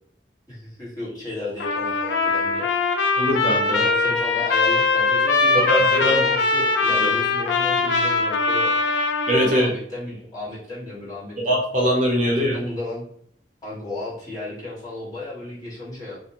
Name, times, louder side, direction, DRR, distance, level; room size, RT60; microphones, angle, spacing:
voice 1, 0.5-2.7 3.7-8.7 9.4-11.6 12.3-13.0 13.6-16.2, left 2 dB, 20° left, -8 dB, 1.1 m, -34 dB
Trumpet, 1.6-9.6, left 4 dB, 80° left, 0.4 m, -21 dB
voice 2, 3.2-3.8 5.7-6.2 7.0-7.1 9.3-9.7 11.4-12.6, equal, 45° right, -2 dB, 0.6 m, -21 dB
2.4 x 2.1 x 2.7 m, 0.63 s
head